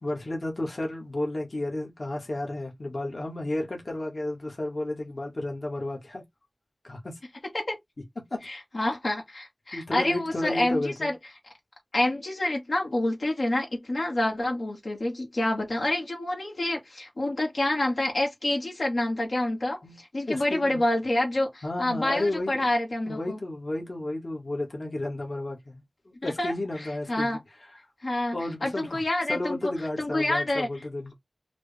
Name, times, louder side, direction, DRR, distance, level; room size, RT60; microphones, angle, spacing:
voice 1, 0.0-6.2 6.8-7.2 8.2-8.5 9.7-11.1 19.8-20.0 20.3-20.8 21.6-22.6 23.1-25.8 26.2-27.4 28.3-28.9 29.3-31.1, left 1 dB, 60° left, 1.6 m, -32 dB
voice 2, 8.4-11.2 11.9-23.4 26.2-27.4 28.0-28.4 28.6-29.7 30.0-30.7, left 1 dB, 80° left, 1.7 m, -28 dB
4.7 x 2.3 x 3.3 m
wide cardioid pair, 65°, 0 cm